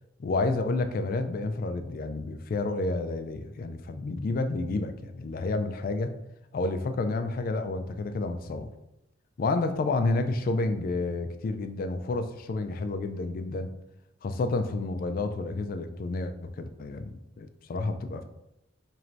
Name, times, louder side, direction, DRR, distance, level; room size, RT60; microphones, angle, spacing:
voice 1, 0.2-6.1 6.5-8.7 9.4-13.7 14.2-18.2, left 3 dB, 50° left, 8 dB, 0.3 m, -30 dB
3.0 x 2.6 x 4.4 m, 0.89 s
head